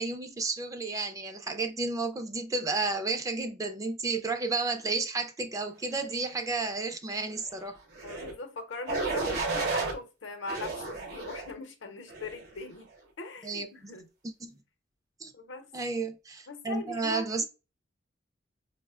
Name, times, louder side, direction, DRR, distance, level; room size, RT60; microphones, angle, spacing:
voice 1, 0.0-7.8 13.4-13.9 14.4-14.5 15.2-15.3 15.7-17.4, right 3 dB, 20° right, 0.3 m, -32 dB
sound 1, 7.9-8.3 8.9-9.9 10.5-11.5 12.1-12.5, right 3 dB, 55° right, 0.7 m, -32 dB
voice 2, 8.0-12.9 13.2-14.1 15.3-15.7 16.5-17.5, left 3 dB, 80° left, 0.7 m, -40 dB
4.7 x 2.1 x 2.3 m
head